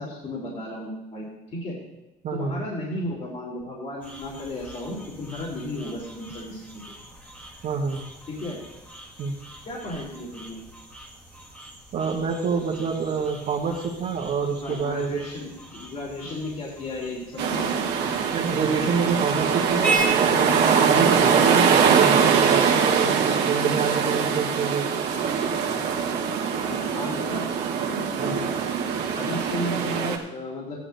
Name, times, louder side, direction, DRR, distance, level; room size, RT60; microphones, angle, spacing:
voice 1, 0.0-1.8 2.3-6.8 8.3-8.6 9.6-10.6 14.6-17.9 26.7-27.4 27.9-28.5 29.2-30.8, left 1 dB, 45° left, -4 dB, 3.3 m, -34 dB
voice 2, 2.2-2.6 7.6-8.0 9.2-9.3 11.9-15.3 18.3-24.9 28.2-28.4, right 5 dB, 60° right, -5 dB, 1.6 m, -27 dB
sound 1, 4.0-21.4, right 3 dB, 10° left, 1.9 m, -38 dB
sound 2, 17.4-30.2, right 6 dB, 90° right, 1.4 m, -22 dB
15.0 x 11.0 x 2.8 m, 1.0 s
cardioid pair, 110°, 17 cm